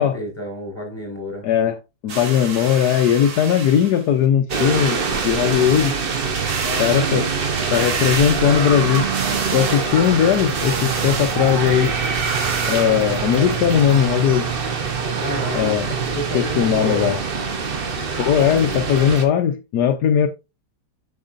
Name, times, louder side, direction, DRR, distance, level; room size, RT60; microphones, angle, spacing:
voice 1, 0.0-1.4 6.6-7.3 12.9-13.1 15.1-17.1, left 1 dB, 15° left, 4.4 m, -30 dB
voice 2, 1.4-1.8 2.0-5.0 5.2-5.9 6.8-7.3 7.7-9.0 9.5-11.9 12.7-14.5 15.5-15.9 16.3-17.2 18.2-20.3, left 9 dB, 75° left, 1.3 m, -18 dB
sound 1, 2.1-4.1 5.1-6.0 6.3-7.0 7.4-8.6 8.9-9.9 10.4-11.4 12.0-12.9 13.6-13.7, right 5 dB, 65° right, 1.9 m, -30 dB
sound 2, 4.5-19.2, right 5 dB, 40° right, 1.0 m, -24 dB
sound 3, 10.6-17.1, right 10 dB, 90° right, 1.3 m, -31 dB
8.8 x 6.4 x 2.6 m
omnidirectional pair, 1.7 m